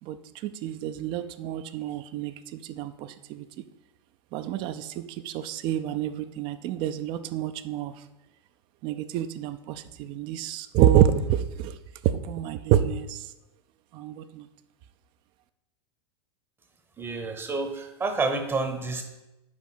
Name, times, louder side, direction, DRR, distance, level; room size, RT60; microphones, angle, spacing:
voice 1, 0.0-3.7 4.3-8.1 8.8-11.8 12.0-13.3 13.9-14.5, right 10 dB, 35° right, 12 dB, 0.4 m, -27 dB
voice 2, 17.0-19.0, right 3 dB, 15° right, 6 dB, 0.8 m, -29 dB
5.0 x 4.7 x 5.7 m, 0.96 s
figure-of-eight pair, 90°, 14 cm